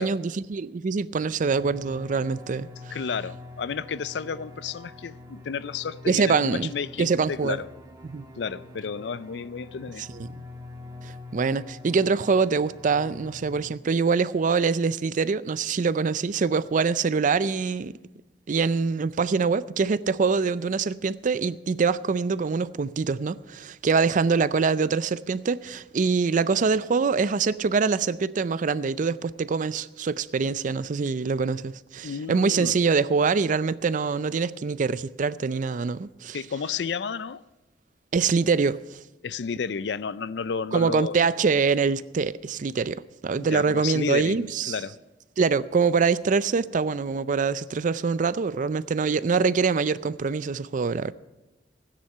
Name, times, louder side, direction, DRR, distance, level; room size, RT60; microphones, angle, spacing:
voice 1, 0.0-3.0 6.1-6.7 7.0-7.6 8.0-8.3 10.1-10.3 11.0-18.0 18.5-36.4 38.1-39.0 40.7-44.8 45.4-51.1, right 5 dB, 45° right, 0.4 m, -24 dB
sound 1, 1.5-13.7, left 2 dB, 25° right, 1.5 m, -45 dB
voice 2, 2.9-7.7 8.4-10.1 32.0-32.8 36.3-37.4 39.2-41.2 43.4-45.0, left 6 dB, 75° left, 0.4 m, -32 dB
16.0 x 10.0 x 5.5 m
head